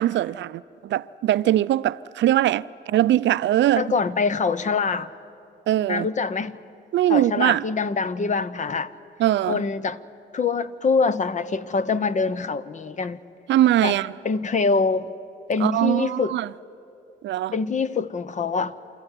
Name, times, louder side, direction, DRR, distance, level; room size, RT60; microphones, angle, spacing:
voice 1, 0.0-3.9 5.7-6.1 6.9-7.6 9.2-9.6 13.5-14.1 15.6-16.5 17.2-17.5, right 13 dB, 65° right, 0.5 m, -21 dB
voice 2, 3.8-5.1 5.9-6.6 7.1-8.9 9.5-10.0 10.3-13.2 13.8-13.9 14.2-15.1 15.5-16.4 17.5-18.8, left 4 dB, 40° left, 0.8 m, -24 dB
28.0 x 14.0 x 9.8 m
cardioid pair, 90°, 20 cm